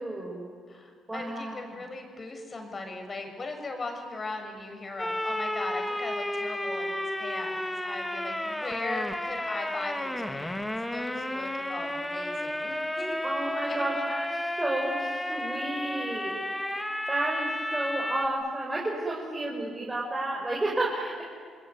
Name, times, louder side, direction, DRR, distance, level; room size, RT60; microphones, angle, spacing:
voice 1, 0.0-0.5 1.1-1.8 13.2-16.8 17.1-21.2, right 2 dB, 15° right, -3 dB, 5.7 m, -32 dB
voice 2, 0.7-13.2 13.6-13.8, left 3 dB, 35° left, 5 dB, 6.2 m, -38 dB
sound 1, 5.0-18.3, left 1 dB, 10° left, 2.3 m, -32 dB
29.0 x 21.0 x 9.5 m, 2.1 s
cardioid pair, 90°, 0 cm